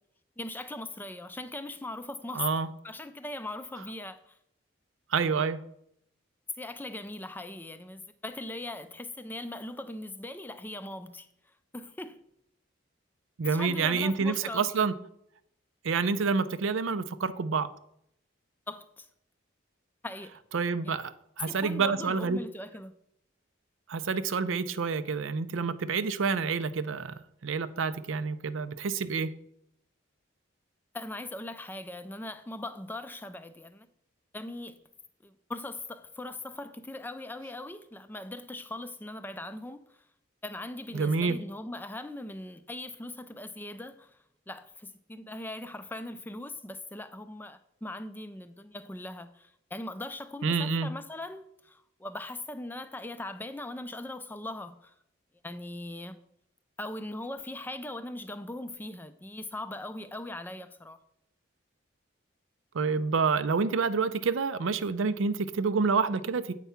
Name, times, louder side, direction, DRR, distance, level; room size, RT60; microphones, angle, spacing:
voice 1, 0.4-2.5 2.8-4.4 6.6-11.3 11.7-12.3 13.4-15.0 18.7-19.1 20.0-20.4 20.8-21.0 21.5-22.9 30.9-33.9 34.3-34.8 35.2-40.1 40.4-44.2 44.5-54.9 55.4-56.2 56.8-61.0, left 1 dB, 10° left, 0.3 m, -40 dB
voice 2, 2.3-2.7 5.1-5.6 13.4-14.9 15.8-17.7 20.5-21.1 21.4-22.4 23.9-29.3 40.9-41.4 50.4-50.9 62.7-66.5, right 5 dB, 80° right, 0.5 m, -28 dB
8.2 x 4.7 x 5.6 m
head